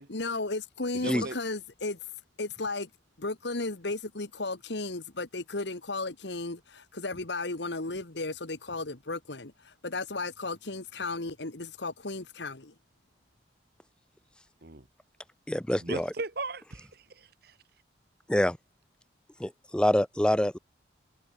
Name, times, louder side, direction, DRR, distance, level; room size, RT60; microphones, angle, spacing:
voice 1, 0.1-2.0 2.4-2.9 3.2-9.5 9.8-12.7, left 3 dB, 65° left, 1.7 m, -34 dB
voice 2, 0.9-1.4 14.6-14.8 15.8-17.5, right 3 dB, 55° right, 1.7 m, -37 dB
voice 3, 15.5-16.1 18.3-18.6 19.4-20.6, left 1 dB, 5° left, 0.4 m, -26 dB
head